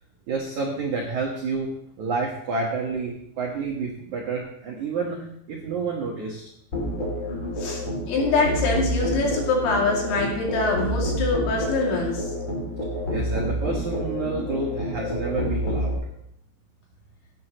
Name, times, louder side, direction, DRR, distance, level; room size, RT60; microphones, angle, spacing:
voice 1, 0.3-1.7 2.0-6.4 13.1-16.0, right 4 dB, 85° right, -1 dB, 1.6 m, -29 dB
Musical instrument, 6.7-15.9, equal, 25° left, 1.6 m, -28 dB
voice 2, 7.6-12.3 15.0-15.1, left 3 dB, 65° left, -2 dB, 4.6 m, -24 dB
17.0 x 10.0 x 3.1 m, 0.71 s
omnidirectional pair, 6.0 m